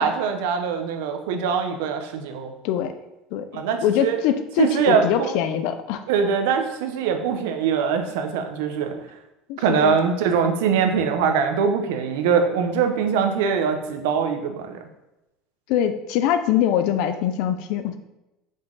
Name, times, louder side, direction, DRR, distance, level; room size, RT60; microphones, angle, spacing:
voice 1, 0.0-2.5 3.5-4.2 4.6-5.3 6.1-9.0 9.6-14.8, right 6 dB, 80° right, 5 dB, 0.8 m, -22 dB
voice 2, 3.3-6.0 9.5-9.9 15.7-18.0, left 10 dB, 55° left, 9 dB, 0.5 m, -23 dB
5.4 x 5.3 x 3.9 m, 0.96 s
cardioid pair, 165°, 0 cm